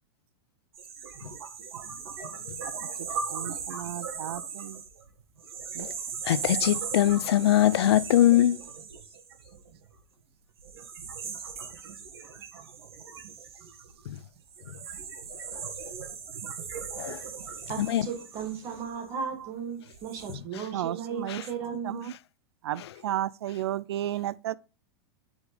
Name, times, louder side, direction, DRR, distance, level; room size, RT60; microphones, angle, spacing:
sound 1, 0.7-10.0 10.6-19.3 19.8-20.3, right 6 dB, 70° right, 2.2 m, -38 dB
voice 1, 3.0-4.8 5.7-5.9 19.4-19.5 20.7-21.4 21.8-22.1 22.6-24.6, right 12 dB, 85° right, 0.4 m, -33 dB
voice 2, 6.3-8.6 17.0-17.2 17.8-18.0, left 12 dB, 90° left, 0.5 m, -21 dB
voice 3, 17.7-22.0, right 7 dB, 25° right, 1.7 m, -36 dB
8.3 x 5.1 x 5.1 m
supercardioid pair, 175°, 13 cm